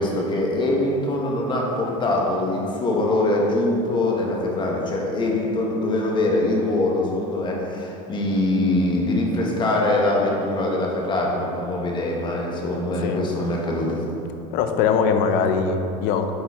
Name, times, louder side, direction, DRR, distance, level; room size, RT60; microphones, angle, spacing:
voice 1, 0.0-14.0, left 2 dB, 25° left, -2 dB, 1.2 m, -23 dB
voice 2, 14.5-16.3, left 6 dB, 60° left, 7 dB, 0.6 m, -21 dB
7.9 x 4.2 x 3.5 m, 2.7 s
supercardioid pair, 115°, 17 cm